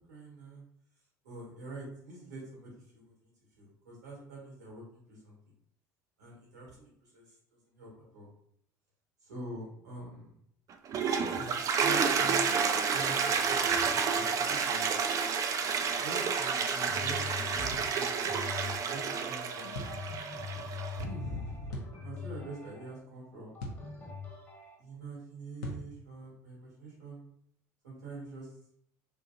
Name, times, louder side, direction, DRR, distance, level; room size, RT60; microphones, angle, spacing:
voice 1, 0.1-0.6 1.2-3.3 3.6-5.4 6.2-7.4 7.7-8.3 9.2-10.4 11.3-12.5 12.9-14.9 16.0-18.4 18.7-19.7 20.9-23.6 24.8-27.2 27.8-28.5, right 2 dB, 85° right, -4 dB, 1.4 m, -45 dB
Toilet flush, 10.7-21.0, right 6 dB, 40° right, 0.4 m, -30 dB
sound 1, 16.9-24.8, left 5 dB, 25° left, 1.1 m, -43 dB
sound 2, 17.7-18.0 19.7-20.0 21.7-21.9 23.6-23.9 25.6-25.9, left 2 dB, 75° left, 0.6 m, -39 dB
2.9 x 2.7 x 2.4 m, 0.70 s
hypercardioid pair, 75°, 9 cm